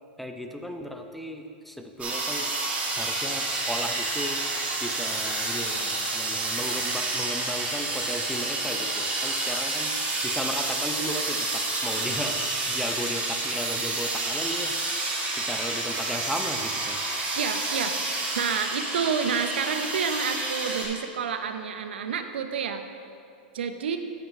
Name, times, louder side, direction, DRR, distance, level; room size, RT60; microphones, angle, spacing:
voice 1, 0.2-2.5 2.9-4.4 4.8-9.9 10.2-15.2 15.5-17.0, equal, ahead, 4 dB, 0.6 m, -35 dB
sound 1, 2.0-20.8, right 2 dB, 25° right, 2.1 m, -29 dB
voice 2, 17.4-18.0 18.4-22.8 23.5-24.0, right 6 dB, 85° right, 7 dB, 0.6 m, -29 dB
7.7 x 5.3 x 5.6 m, 2.4 s
hypercardioid pair, 120°, 6 cm